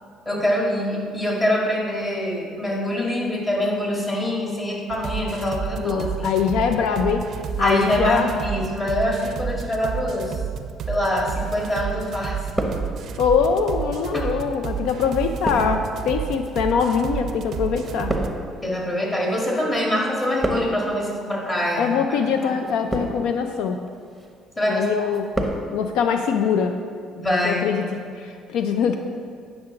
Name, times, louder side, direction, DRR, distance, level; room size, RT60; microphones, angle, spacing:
voice 1, 0.3-6.3 7.6-10.4 10.9-12.4 14.1-14.3 18.6-21.9 22.4-22.6 24.6-25.1 27.2-27.7, left 1 dB, 20° left, -2 dB, 1.8 m, -24 dB
sound 1, 4.9-18.4, right 7 dB, 55° right, 0.4 m, -31 dB
voice 2, 5.8-7.3 7.6-8.3 13.2-18.1 21.8-23.8 24.7-26.7 27.4-27.9 28.2-29.0, left 6 dB, 80° left, 6 dB, 0.4 m, -23 dB
sound 2, 11.4-12.0 12.3-13.3 14.0-19.7 20.0-21.0 21.7-22.0 22.6-23.4 23.9-24.3 24.7-25.7 25.9-26.0, right 1 dB, ahead, 0.9 m, -30 dB
9.5 x 6.0 x 3.8 m, 2.1 s
cardioid pair, 105°, 0 cm